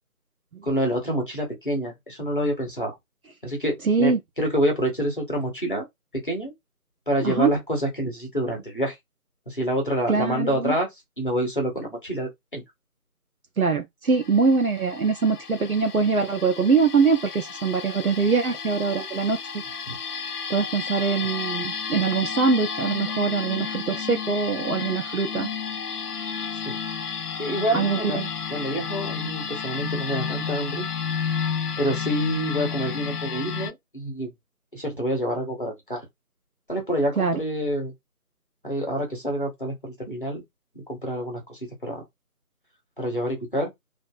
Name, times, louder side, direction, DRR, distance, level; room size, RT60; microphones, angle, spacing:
voice 1, 0.6-3.0 3.4-5.9 6.1-6.5 7.1-9.0 9.5-12.6 19.9-20.0 26.6-26.8 27.4-28.2 28.5-30.9 31.8-34.3 34.7-36.1 36.7-37.9 38.6-40.4 40.7-42.0 43.0-43.7, equal, 35° left, 1.0 m, -27 dB
voice 2, 3.9-4.2 7.2-7.5 10.1-10.7 13.6-19.4 20.5-25.5 27.7-28.3 37.2-37.4, right 4 dB, 70° right, 0.7 m, -23 dB
sound 1, 14.1-33.7, left 6 dB, 85° left, 0.6 m, -32 dB
2.6 x 2.6 x 2.3 m
figure-of-eight pair, 165°, 45 cm